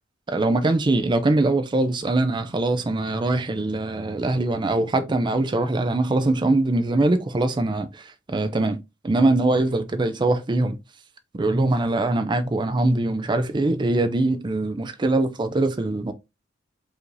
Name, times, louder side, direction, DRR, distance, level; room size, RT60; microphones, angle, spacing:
voice 1, 0.3-8.8 9.0-10.8 11.3-16.1, right 2 dB, 25° right, 0.4 m, -22 dB
4.8 x 2.6 x 3.1 m
head